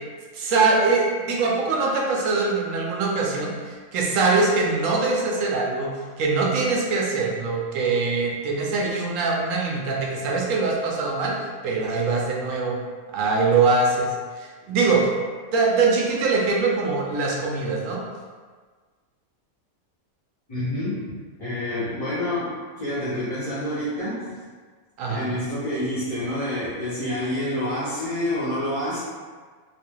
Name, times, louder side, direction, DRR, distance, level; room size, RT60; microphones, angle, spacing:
voice 1, 0.3-5.9 6.2-11.3 11.6-12.8 13.1-15.1 15.5-18.0 25.0-25.3, right 3 dB, 85° right, -2 dB, 1.0 m, -23 dB
voice 2, 20.5-21.1 21.4-24.4 25.1-29.0, left 1 dB, 30° left, -11 dB, 0.9 m, -28 dB
3.3 x 2.4 x 2.2 m, 1.5 s
omnidirectional pair, 1.3 m